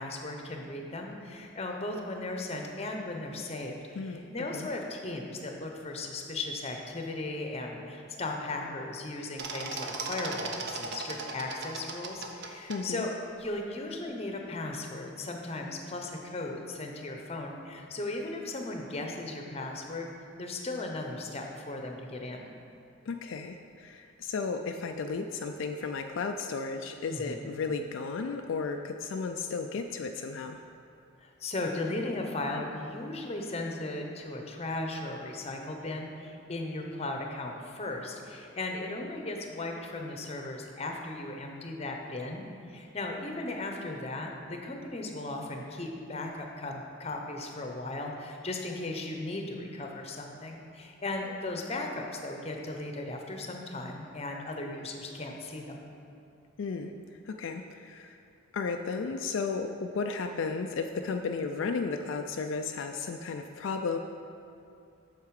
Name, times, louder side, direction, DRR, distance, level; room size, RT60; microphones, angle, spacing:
voice 1, 0.0-3.8 4.0-20.1 20.4-22.5 27.1-27.5 31.2-55.8, left 2 dB, 30° left, 2 dB, 0.8 m, -37 dB
voice 2, 4.0-4.7 12.7-13.1 23.1-30.6 56.6-56.9 57.3-58.2 58.5-64.0, left 4 dB, 70° left, 5 dB, 0.4 m, -34 dB
sound 1, 9.4-12.8, right 4 dB, 55° right, 0.7 m, -37 dB
8.3 x 6.6 x 4.8 m, 2.6 s
head